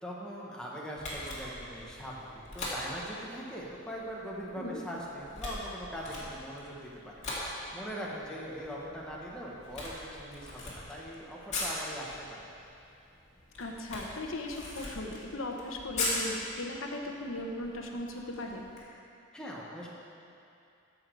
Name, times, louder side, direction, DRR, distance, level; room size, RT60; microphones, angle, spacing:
voice 1, 0.0-2.3 2.5-7.1 7.7-12.4 19.3-19.9, equal, 5° left, -5 dB, 1.3 m, -41 dB
Camera, 1.0-18.8, left 2 dB, 35° left, 2.4 m, -41 dB
voice 2, 13.6-18.7, left 1 dB, 80° left, 1 dB, 1.0 m, -38 dB
14.5 x 6.3 x 4.7 m, 2.6 s
head